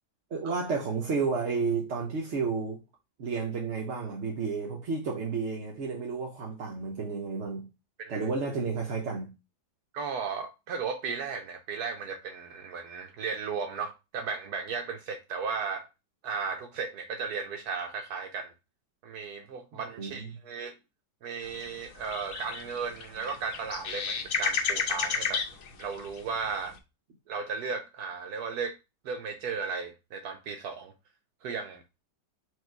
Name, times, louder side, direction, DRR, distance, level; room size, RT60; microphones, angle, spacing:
voice 1, 0.3-2.8 3.2-7.7 8.1-9.3 19.7-20.3, right 4 dB, 55° right, 0.9 m, -31 dB
voice 2, 9.9-15.9 16.2-18.5 19.0-20.7 21.2-25.4 25.8-26.7 27.3-28.8 29.0-30.9 31.4-31.8, right 5 dB, 70° right, 1.1 m, -35 dB
sound 1, 21.4-26.8, left 5 dB, 60° left, 1.1 m, -32 dB
4.7 x 2.5 x 4.4 m
omnidirectional pair, 1.8 m